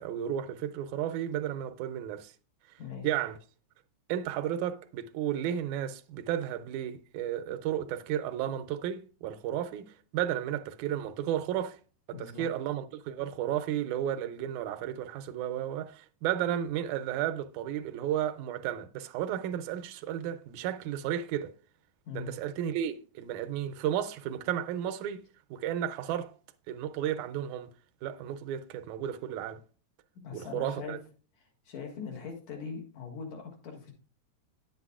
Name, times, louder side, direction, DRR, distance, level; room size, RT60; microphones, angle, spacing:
voice 1, 0.0-2.3 2.7-2.8 3.0-3.4 4.1-11.8 12.2-21.5 22.1-25.2 25.5-26.3 26.7-27.7 28.0-29.6 30.3-31.0, right 10 dB, 85° right, 2.0 m, -33 dB
voice 2, 12.1-12.5 22.0-22.3 30.2-31.0 31.7-33.9, left 6 dB, 70° left, 2.9 m, -41 dB
10.0 x 8.1 x 2.4 m
omnidirectional pair, 3.4 m